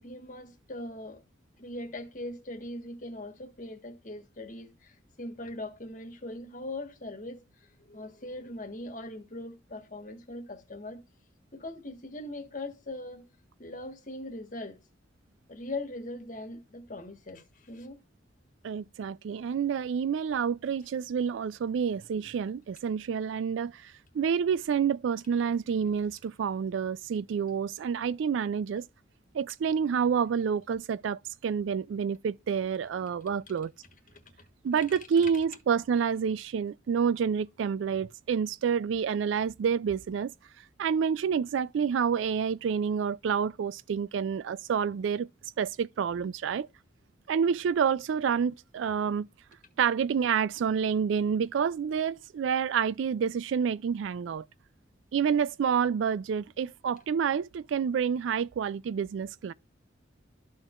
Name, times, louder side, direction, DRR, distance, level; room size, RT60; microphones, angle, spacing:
voice 1, 0.0-1.2 1.6-7.4 7.9-11.0 11.5-13.3 13.6-14.8 15.5-18.0, left 2 dB, 45° left, 1.5 m, -40 dB
voice 2, 18.6-28.8 29.3-33.7 34.6-40.3 40.8-45.3 45.6-46.7 47.3-49.3 49.8-54.5 55.1-59.5, right 7 dB, 80° right, 0.3 m, -28 dB
13.5 x 4.5 x 2.4 m
head